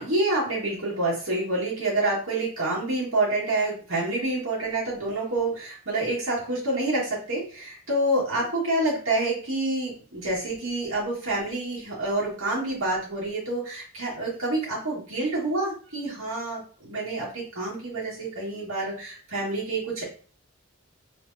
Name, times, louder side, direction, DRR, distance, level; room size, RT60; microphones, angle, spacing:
voice 1, 0.0-20.0, right 2 dB, 80° right, -6 dB, 2.0 m, -28 dB
3.6 x 3.5 x 2.7 m, 0.40 s
head